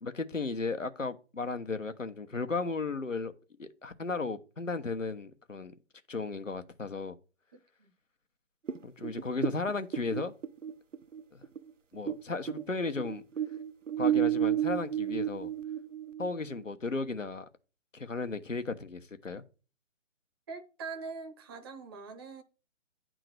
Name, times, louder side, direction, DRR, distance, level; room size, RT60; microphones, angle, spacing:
voice 1, 0.0-3.3 3.6-5.7 6.1-7.2 8.8-10.3 11.3-11.4 11.9-13.2 14.0-15.5 16.2-17.4 17.9-19.4, left 3 dB, 90° left, 1.1 m, -35 dB
voice 2, 7.5-7.9 20.5-22.4, right 4 dB, 20° right, 0.7 m, -43 dB
sound 1, 8.7-12.2 12.5-16.6, right 10 dB, 80° right, 0.7 m, -31 dB
9.4 x 3.8 x 6.4 m
figure-of-eight pair, 140°, 37 cm